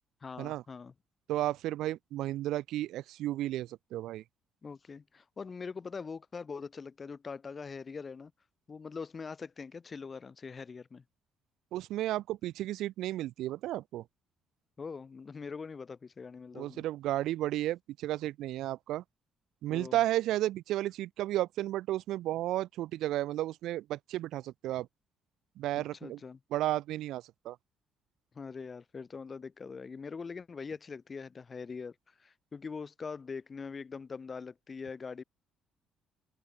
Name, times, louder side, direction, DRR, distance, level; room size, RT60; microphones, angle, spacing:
voice 1, 0.2-0.9 4.6-8.3 8.7-11.0 14.8-16.8 19.7-20.0 25.8-26.4 28.3-35.2, left 5 dB, 40° left, 3.8 m, -43 dB
voice 2, 1.3-4.2 11.7-14.0 16.5-19.0 19.6-24.9 25.6-26.2 26.5-27.6, right 14 dB, 70° right, 1.2 m, -33 dB
open air
hypercardioid pair, 50°, 0 cm